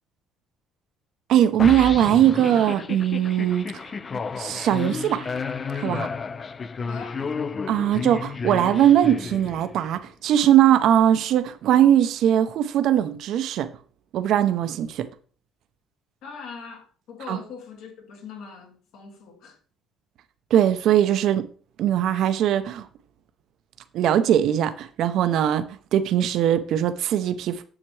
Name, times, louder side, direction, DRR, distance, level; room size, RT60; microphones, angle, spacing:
voice 1, 1.3-3.7 4.4-5.3 5.7-6.1 7.7-13.7 14.1-15.1 17.3-17.4 20.5-21.5 21.8-22.9 23.9-25.6 25.9-27.6, right 10 dB, 60° right, 0.6 m, -20 dB
sound 1, 1.6-9.9, left 5 dB, 25° left, 0.3 m, -32 dB
voice 2, 6.9-7.2 16.2-19.6, left 5 dB, 70° left, 2.3 m, -41 dB
7.2 x 7.2 x 3.2 m
cardioid pair, 140°, 0 cm